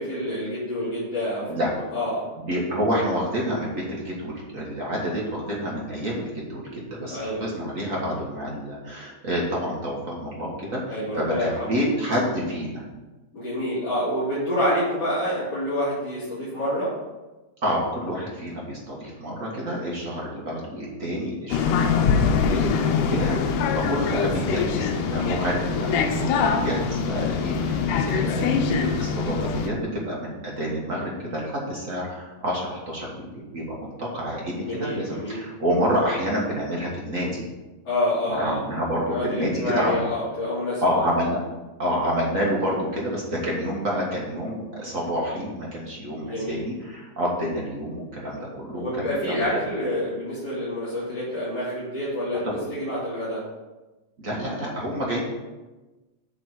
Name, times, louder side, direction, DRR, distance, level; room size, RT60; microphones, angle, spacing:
voice 1, 0.0-1.6 1.9-2.3 7.1-7.4 10.9-11.8 13.3-16.9 34.6-35.5 37.8-38.6 39.1-41.0 46.2-46.6 48.7-53.4, left 1 dB, 35° left, -14 dB, 3.5 m, -27 dB
voice 2, 2.4-12.8 17.6-37.5 38.3-40.0 40.8-41.4 41.8-49.4 54.2-55.3, equal, 40° right, -4 dB, 1.1 m, -28 dB
sound 1, 21.5-29.7, left 5 dB, 85° left, 2.3 m, -23 dB
8.2 x 4.7 x 5.9 m, 1.1 s
omnidirectional pair, 3.5 m